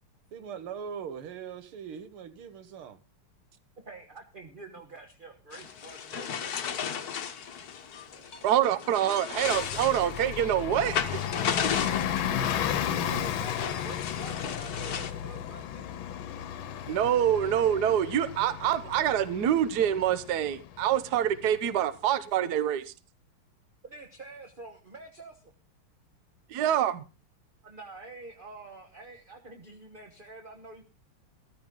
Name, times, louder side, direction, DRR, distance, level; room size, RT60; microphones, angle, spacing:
voice 1, 0.3-3.0 7.9-8.3, right 7 dB, 85° right, 2.2 m, -41 dB
voice 2, 3.8-6.9 12.3-12.4 12.7-16.0 23.8-25.4 27.6-30.8, right 2 dB, 30° right, 1.2 m, -46 dB
sound 1, 5.5-15.1, left 7 dB, 55° left, 1.5 m, -35 dB
voice 3, 8.4-11.2 16.9-22.8 26.5-27.0, right 10 dB, 55° right, 1.4 m, -26 dB
Bus, 9.4-21.7, left 9 dB, 70° left, 1.7 m, -34 dB
14.5 x 13.5 x 3.8 m
omnidirectional pair, 2.3 m